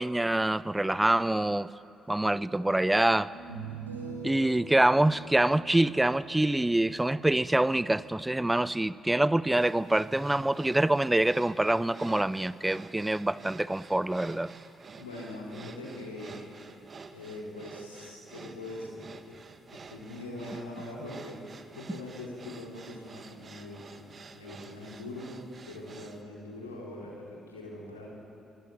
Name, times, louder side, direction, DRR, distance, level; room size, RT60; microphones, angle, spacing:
voice 1, 0.0-1.7 2.1-3.3 4.2-14.5, right 1 dB, 10° right, 18 dB, 0.6 m, -25 dB
sound 1, 2.2-2.3 3.3-8.5, right 4 dB, 90° right, 2.5 m, -44 dB
sound 2, 9.6-26.2, right 4 dB, 40° right, 1.8 m, -49 dB
voice 2, 15.0-16.6 17.1-19.1 19.7-25.3 25.6-28.1, left 1 dB, 85° left, -4 dB, 4.5 m, -42 dB
24.5 x 23.5 x 7.5 m, 2.6 s
figure-of-eight pair, 40°, 0 cm